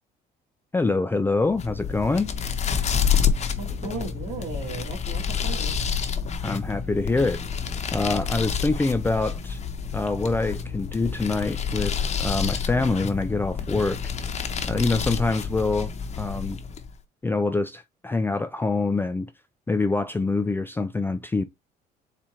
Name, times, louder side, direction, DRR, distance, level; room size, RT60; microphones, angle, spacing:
voice 1, 0.7-2.3 6.4-7.4 7.9-9.6 9.9-14.0 14.6-16.6 17.2-19.3 19.7-21.4, left 3 dB, 10° left, 0.4 m, -25 dB
sound 1, 1.4-16.9, left 6 dB, 40° left, 0.8 m, -28 dB
voice 2, 3.6-5.7, right 3 dB, 50° right, 2.0 m, -36 dB
4.3 x 2.5 x 4.3 m
cardioid pair, 110°, 17 cm